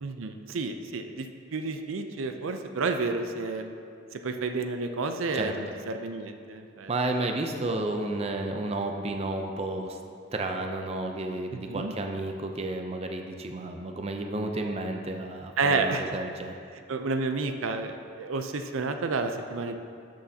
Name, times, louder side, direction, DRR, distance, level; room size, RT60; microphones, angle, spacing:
voice 1, 0.0-3.7 4.1-6.9 11.7-11.9 15.6-16.3 16.9-19.7, right 3 dB, 85° right, 6 dB, 0.5 m, -30 dB
voice 2, 6.9-10.0 10.3-16.6, right 2 dB, 30° right, 4 dB, 0.5 m, -32 dB
12.5 x 6.4 x 2.8 m, 2.4 s
head